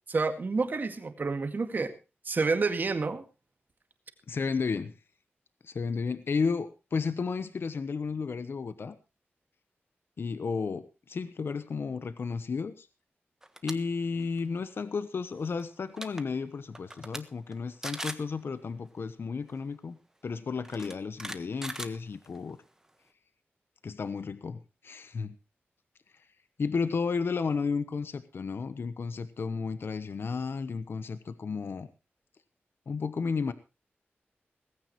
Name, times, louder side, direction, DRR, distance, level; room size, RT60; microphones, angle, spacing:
voice 1, 0.1-1.9 2.3-3.2, right 4 dB, 50° right, 8 dB, 2.0 m, -29 dB
voice 2, 4.3-4.9 5.6-9.0 10.2-12.9 13.6-20.0 20.2-22.6 23.8-25.4 26.1-26.3 26.6-31.9 32.9-33.5, left 5 dB, 65° left, 13 dB, 1.0 m, -33 dB
sound 1, 13.4-13.7 14.2-14.4 15.6-15.7 15.9-16.2 16.7-17.2 17.5-17.6 17.8-18.3 19.5-19.6 20.6-22.5, right 1 dB, 10° right, 1.4 m, -39 dB
18.0 x 15.5 x 3.1 m, 0.30 s
wide cardioid pair, 130°, 4 cm